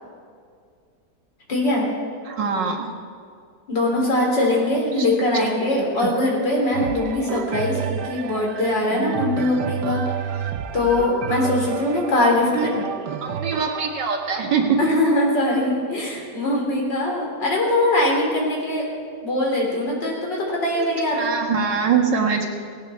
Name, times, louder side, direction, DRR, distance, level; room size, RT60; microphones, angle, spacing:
voice 1, 1.5-1.9 3.7-10.0 10.3-10.4 10.7-12.7 14.8-18.9 19.2-21.3, left 1 dB, 85° left, -2 dB, 4.1 m, -22 dB
voice 2, 2.3-2.9 5.7-6.1 12.6-12.8 13.2-14.8 20.7-20.9 21.2-22.5, right 6 dB, 90° right, 2 dB, 2.3 m, -23 dB
sound 1, 6.7-16.5 17.2-17.3, right 8 dB, 75° right, 1.3 m, -31 dB
18.0 x 17.5 x 4.3 m, 2.1 s
omnidirectional pair, 1.9 m